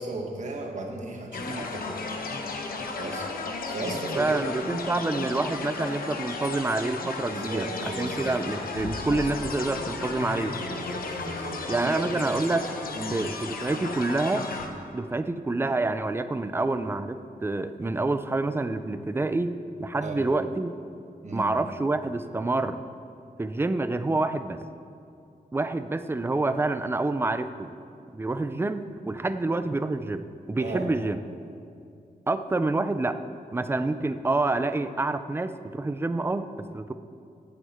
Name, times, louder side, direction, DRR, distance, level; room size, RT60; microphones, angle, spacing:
voice 1, 0.0-2.3 2.9-4.4 7.3-8.3 10.6-12.3 12.9-13.2 20.0-20.3 21.2-21.5 30.6-30.9, right 2 dB, 50° right, 2 dB, 1.5 m, -36 dB
sound 1, 1.3-14.7, left 3 dB, 75° left, 1.1 m, -34 dB
voice 2, 4.2-10.6 11.7-12.7 13.1-14.5 14.9-20.7 21.3-22.8 23.4-24.6 25.5-27.7 28.1-31.2 32.3-33.2 33.5-36.9, right 2 dB, 15° right, 10 dB, 0.4 m, -27 dB
17.0 x 7.4 x 4.4 m, 2.4 s
wide cardioid pair, 140°, 15 cm